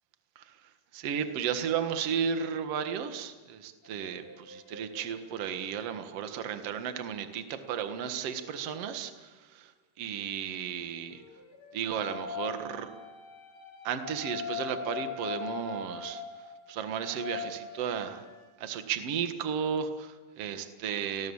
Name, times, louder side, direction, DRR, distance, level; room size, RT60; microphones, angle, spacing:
voice 1, 0.9-9.7 10.0-11.2 11.7-12.9 13.8-16.2 16.7-18.2 18.6-21.3, right 7 dB, 65° right, 8 dB, 1.5 m, -34 dB
sound 1, 3.8-9.0 10.9-18.5, left 6 dB, 65° left, 6.7 m, -42 dB
29.5 x 19.5 x 7.2 m, 1.2 s
omnidirectional pair, 5.3 m